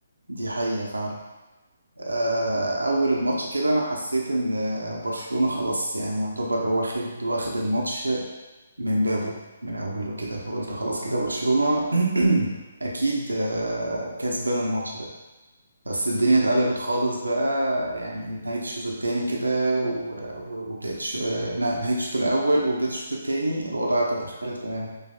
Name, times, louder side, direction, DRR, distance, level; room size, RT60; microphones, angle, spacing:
voice 1, 0.3-1.1 2.0-8.2 8.8-9.4 9.6-12.5 12.8-15.1 15.9-24.9, right 1 dB, 80° right, -1 dB, 0.7 m, -25 dB
6.2 x 2.7 x 2.4 m, 1.1 s
figure-of-eight pair, 135°, 0 cm